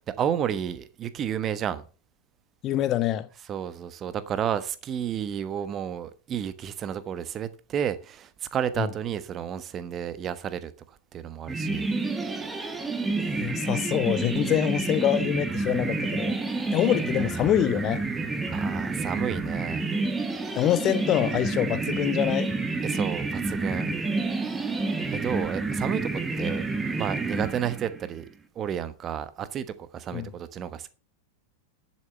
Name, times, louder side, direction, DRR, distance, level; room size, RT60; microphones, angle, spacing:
voice 1, 0.2-1.8 3.4-11.9 18.5-19.8 22.8-23.9 25.1-26.6 26.9-28.3 28.5-30.9, right 9 dB, 30° right, 1.2 m, -31 dB
voice 2, 2.6-3.3 8.8-8.9 13.2-16.4 16.7-18.0 20.5-22.5 30.1-30.3, left 12 dB, 35° left, 1.1 m, -25 dB
sound 1, 11.5-28.1, right 3 dB, 10° right, 1.6 m, -29 dB
10.5 x 7.5 x 5.7 m
figure-of-eight pair, 90°, 0 cm